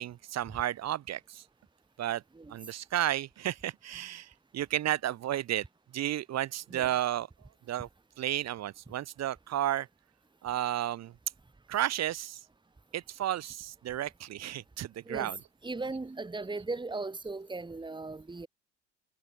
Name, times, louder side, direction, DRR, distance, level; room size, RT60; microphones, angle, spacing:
voice 1, 0.0-1.4 2.0-2.2 2.5-5.7 5.9-7.3 7.7-7.9 8.2-9.9 10.4-11.1 11.7-12.4 12.9-15.4, right 12 dB, 45° right, 4.4 m, -32 dB
voice 2, 15.6-18.5, right 3 dB, 10° right, 4.2 m, -37 dB
figure-of-eight pair, 65°, 38 cm